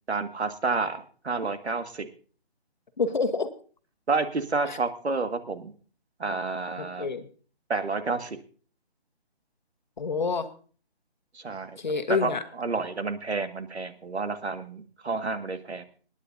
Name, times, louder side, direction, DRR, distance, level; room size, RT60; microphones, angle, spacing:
voice 1, 0.1-2.1 4.1-5.7 6.2-7.1 7.7-8.4 11.3-11.8 12.2-12.3 12.6-15.8, right 4 dB, 90° right, 8 dB, 1.9 m, -30 dB
voice 2, 3.0-3.5 4.7-4.8 6.8-7.3 10.0-10.5 11.8-12.4, left 4 dB, 45° left, 8 dB, 1.2 m, -27 dB
26.5 x 10.0 x 2.7 m, 0.42 s
hypercardioid pair, 175°, 32 cm